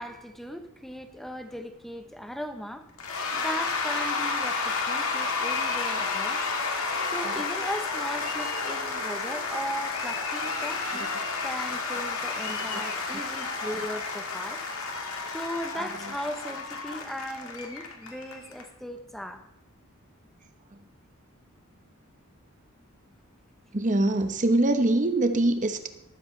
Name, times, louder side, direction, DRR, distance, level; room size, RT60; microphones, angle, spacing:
voice 1, 0.0-2.9 3.3-6.4 7.1-11.1 11.4-14.6 15.3-19.4, equal, ahead, 7 dB, 0.9 m, -37 dB
Cheering / Applause / Crowd, 3.0-18.6, left 4 dB, 85° left, 1.8 m, -31 dB
voice 2, 23.7-25.9, right 2 dB, 35° right, 7 dB, 1.0 m, -23 dB
13.5 x 12.0 x 3.3 m, 0.81 s
head